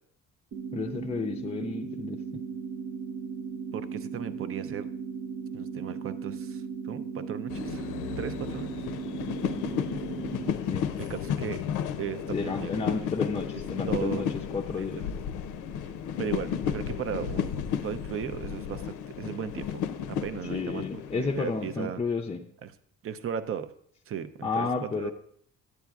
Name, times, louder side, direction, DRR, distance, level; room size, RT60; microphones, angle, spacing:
sound 1, 0.5-10.5, right 6 dB, 75° right, 0.9 m, -37 dB
voice 1, 0.7-2.4 10.7-10.9 12.3-14.3 14.5-15.0 20.4-22.5 24.4-25.1, left 4 dB, 20° left, 1 dB, 0.4 m, -32 dB
voice 2, 3.7-4.9 5.5-7.9 8.2-8.8 11.0-11.6 12.0-13.1 13.9-14.3 14.8-15.1 16.2-17.6 17.8-19.8 20.1-22.0 22.6-22.7 23.0-23.7 24.1-25.1, right 8 dB, 45° right, 12 dB, 0.5 m, -36 dB
sound 2, 7.5-21.9, left 8 dB, 85° left, 0.5 m, -33 dB
10.0 x 8.1 x 2.4 m, 0.67 s
cardioid pair, 90°, 30 cm